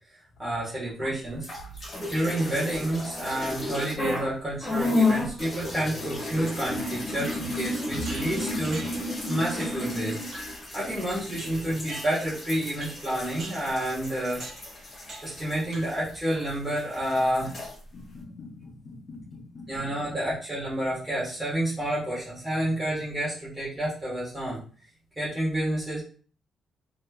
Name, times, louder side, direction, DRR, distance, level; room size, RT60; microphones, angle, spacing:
voice 1, 0.4-1.5 2.1-8.8 9.3-10.2 10.7-14.4 15.2-17.5 19.7-24.6 25.2-26.0, right 1 dB, 15° right, -9 dB, 1.5 m, -29 dB
sound 1, 1.4-4.3 4.6-16.5 16.8-17.7, left 2 dB, 35° left, 1.6 m, -32 dB
sound 2, 8.0-9.2 9.6-9.9 10.3-10.7 11.4-12.4 12.8-13.1 13.4-13.8 14.4-14.7 15.1-15.4 15.7-16.1, right 2 dB, 55° right, 1.3 m, -43 dB
voice 2, 17.9-20.2, left 3 dB, 70° left, 6 dB, 0.5 m, -44 dB
3.0 x 3.0 x 2.4 m, 0.42 s
cardioid pair, 110°, 0 cm